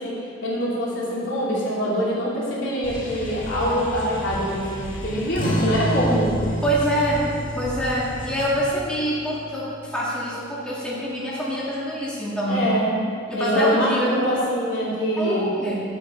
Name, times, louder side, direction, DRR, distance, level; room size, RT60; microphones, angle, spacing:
voice 1, 0.0-6.6 12.4-12.9 13.3-15.5, equal, 70° left, -6 dB, 2.9 m, -24 dB
sound 1, 2.8-8.5, left 1 dB, 90° left, 2.0 m, -35 dB
sound 2, 5.3-10.4, right 1 dB, 45° left, 2.0 m, -29 dB
voice 2, 6.6-7.3 7.5-12.6 13.3-14.2 15.2-15.8, equal, 5° left, -8 dB, 2.0 m, -25 dB
11.0 x 8.2 x 4.5 m, 2.2 s
head